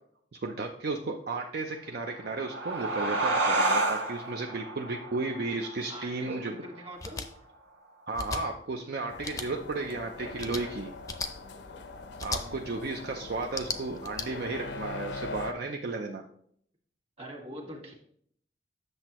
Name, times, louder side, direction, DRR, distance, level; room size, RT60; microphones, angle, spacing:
voice 1, 0.3-6.6 8.1-10.9 12.2-16.2, right 3 dB, 60° right, 2 dB, 0.5 m, -34 dB
sound 1, 2.0-7.2, right 2 dB, 90° right, 1.3 m, -31 dB
voice 2, 5.9-7.2 17.2-17.9, right 1 dB, 35° right, 1 dB, 1.6 m, -43 dB
sound 2, 7.0-7.3 8.1-8.4 9.2-9.5 10.4-10.6 11.1-11.3 12.2-12.4 13.4-14.3, left 3 dB, 20° left, 0.6 m, -35 dB
sound 3, 9.1-15.5, left 3 dB, 85° left, 0.7 m, -41 dB
8.0 x 6.6 x 3.0 m, 0.66 s
head